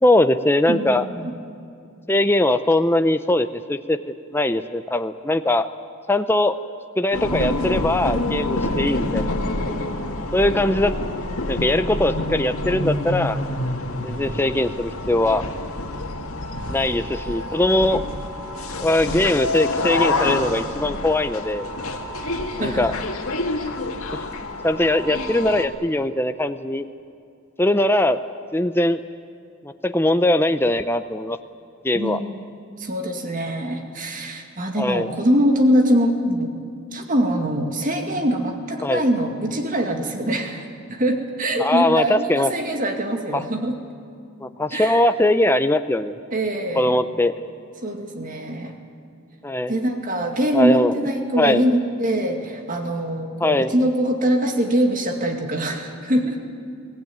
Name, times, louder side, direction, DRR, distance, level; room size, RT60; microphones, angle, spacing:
voice 1, 0.0-1.0 2.1-5.7 6.1-6.6 7.0-9.3 10.3-10.9 11.5-13.4 14.0-15.4 16.7-18.0 18.8-21.7 22.6-22.9 24.6-26.9 27.6-28.2 28.5-29.0 29.6-31.4 31.8-32.2 34.8-35.1 38.8-39.0 41.6-42.5 43.3-43.4 44.4-46.2 46.8-47.5 49.4-49.7 50.5-50.9 51.4-51.6 53.4-53.7, left 1 dB, 10° left, 9 dB, 0.5 m, -20 dB
voice 2, 0.7-1.3 22.6-22.9 31.9-32.4 32.8-36.5 36.9-43.8 44.7-45.0 46.3-46.9 47.8-48.8 49.7-56.4, right 1 dB, 35° right, 4 dB, 2.2 m, -23 dB
sound 1, 7.1-25.7, left 2 dB, 70° left, 2.1 m, -27 dB
23.0 x 17.5 x 9.3 m, 2.4 s
head